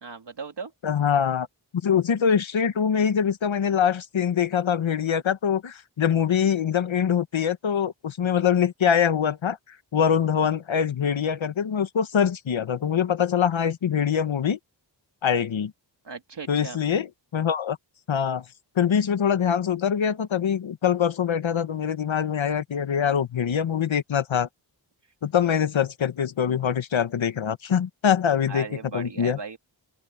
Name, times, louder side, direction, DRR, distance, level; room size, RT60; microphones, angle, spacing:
voice 1, 0.0-0.7 16.0-16.8 28.5-29.6, right 5 dB, 65° right, 2.9 m, -37 dB
voice 2, 0.8-1.5 1.8-9.6 9.9-14.6 15.2-15.7 16.5-17.8 18.1-18.4 18.8-24.5 25.2-28.7 28.9-29.4, left 8 dB, 80° left, 1.2 m, -24 dB
open air
wide cardioid pair, 105°, 46 cm